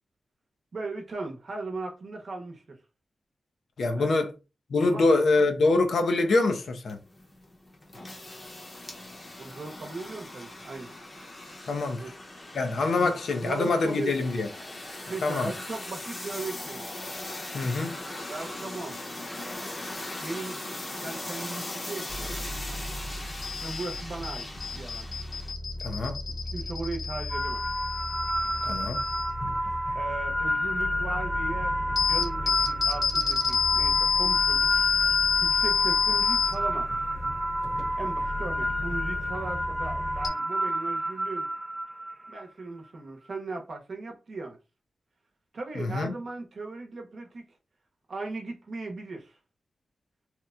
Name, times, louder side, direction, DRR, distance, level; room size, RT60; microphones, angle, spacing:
voice 1, 0.7-2.8 4.0-4.1 4.8-5.1 9.4-10.9 12.0-12.1 13.0-13.1 13.4-14.3 15.1-16.9 18.3-19.0 20.2-20.6 21.0-22.5 23.6-24.5 24.7-25.1 26.5-27.6 29.9-34.7 35.4-36.9 38.0-41.5 42.3-44.6 45.5-47.5 48.1-49.4, right 3 dB, 55° right, 0.8 m, -37 dB
voice 2, 3.8-4.3 4.7-7.0 11.7-12.0 12.5-14.5 15.2-15.5 17.5-18.0 25.8-26.2 28.6-29.0 45.7-46.1, left 3 dB, 80° left, 0.6 m, -25 dB
sound 1, 6.9-25.5, left 1 dB, 30° left, 0.8 m, -39 dB
sound 2, 22.1-40.3, left 5 dB, 55° left, 1.0 m, -29 dB
sound 3, 27.3-42.4, equal, 20° right, 0.4 m, -30 dB
2.9 x 2.1 x 3.6 m
wide cardioid pair, 150°, 0 cm